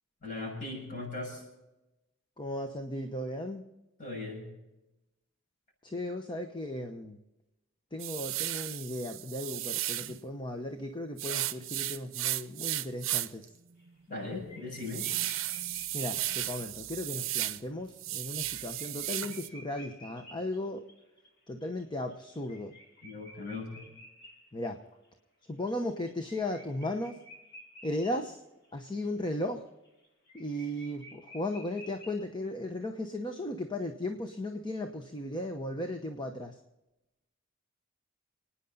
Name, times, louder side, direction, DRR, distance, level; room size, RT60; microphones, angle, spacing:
voice 1, 0.2-1.4 4.0-4.5 14.1-15.1 23.0-23.9, left 2 dB, 40° left, 0 dB, 6.9 m, -38 dB
voice 2, 2.4-3.6 5.8-7.2 7.9-13.5 15.9-20.8 21.5-22.7 24.5-24.8 25.5-27.2 27.8-28.4 28.7-29.6 30.3-36.6, left 1 dB, 25° left, 4 dB, 1.0 m, -36 dB
sound 1, 8.0-10.2 11.2-13.4 13.9-14.0 14.4-17.6 17.9-19.5, right 15 dB, 75° right, 0.6 m, -34 dB
sound 2, 13.8-14.2 14.5-16.8 17.4-17.5 17.8-17.9 18.2-25.1 25.4-28.3 28.6-28.7 29.0-32.3, left 1 dB, 60° left, 4.3 m, -53 dB
29.5 x 9.9 x 4.0 m, 0.96 s
head